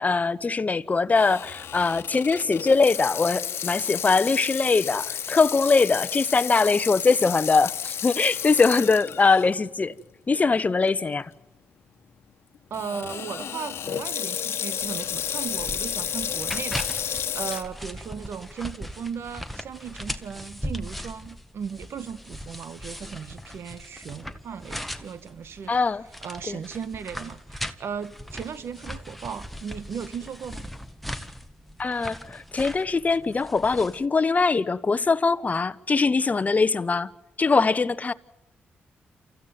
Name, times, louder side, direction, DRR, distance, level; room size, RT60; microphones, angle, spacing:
voice 1, 0.0-9.9 10.3-11.3 25.7-26.0 26.5-26.6 31.8-37.1 37.4-38.1, left 4 dB, 35° left, 1.0 m, -22 dB
Water tap faucet / Sink (filling or washing), 1.1-9.5 10.0-10.1 10.9-11.1 12.7-17.6, left 8 dB, 70° left, 1.3 m, -32 dB
voice 2, 12.7-25.9 26.2-30.7, right 7 dB, 70° right, 1.7 m, -36 dB
sound 1, 14.8-34.1, equal, ahead, 1.7 m, -39 dB
28.0 x 15.0 x 9.5 m
cardioid pair, 65°, 4 cm